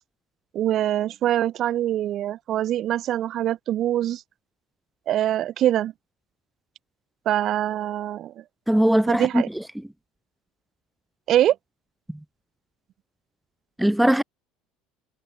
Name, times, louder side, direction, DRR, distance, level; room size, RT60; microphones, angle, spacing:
voice 1, 0.5-4.2 5.1-5.9 7.2-8.4 9.1-9.5 11.3-11.6, right 12 dB, 50° right, 1.6 m, -24 dB
voice 2, 8.7-9.4 13.8-14.2, right 1 dB, 5° right, 0.9 m, -19 dB
figure-of-eight pair, 65°, 0 cm